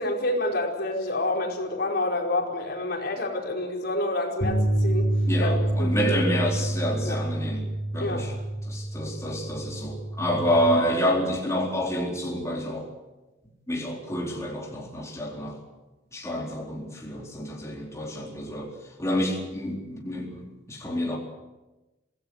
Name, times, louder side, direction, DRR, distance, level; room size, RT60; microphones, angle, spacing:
voice 1, 0.0-5.1 5.4-6.2 7.0-7.2 8.0-8.2, left 2 dB, 60° left, 0 dB, 4.9 m, -28 dB
sound 1, 4.4-10.7, right 1 dB, 40° left, 3.6 m, -27 dB
voice 2, 5.3-7.7 7.9-8.3 8.6-12.9 13.7-15.6 16.1-18.7 19.0-21.2, equal, 15° left, -2 dB, 4.2 m, -28 dB
26.0 x 17.5 x 8.1 m, 1.1 s
head